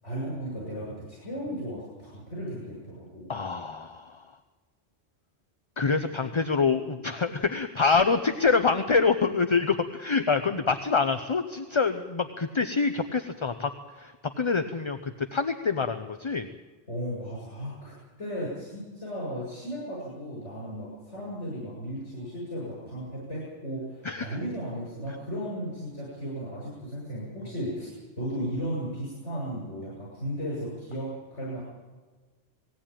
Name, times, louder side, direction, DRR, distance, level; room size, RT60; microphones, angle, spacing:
voice 1, 0.0-3.4 16.9-17.9 18.2-27.9 28.2-31.6, equal, 80° left, -6 dB, 7.8 m, -35 dB
voice 2, 3.3-4.3 5.8-16.5 24.0-24.4, left 4 dB, 30° left, 8 dB, 0.6 m, -26 dB
19.5 x 16.0 x 8.9 m, 1.3 s
omnidirectional pair, 1.2 m